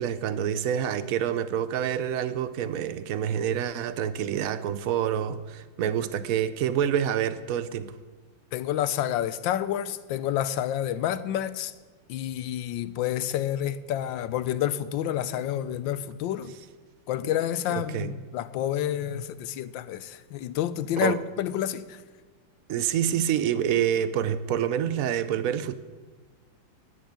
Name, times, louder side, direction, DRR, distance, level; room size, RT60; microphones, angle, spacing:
voice 1, 0.0-8.0 17.2-17.3 17.7-18.1 21.0-21.2 22.7-25.8, right 9 dB, 75° right, 0.8 m, -27 dB
voice 2, 8.5-11.7 12.1-16.5 17.1-22.0, left 11 dB, 80° left, 1.3 m, -29 dB
10.5 x 8.9 x 9.4 m
omnidirectional pair, 2.1 m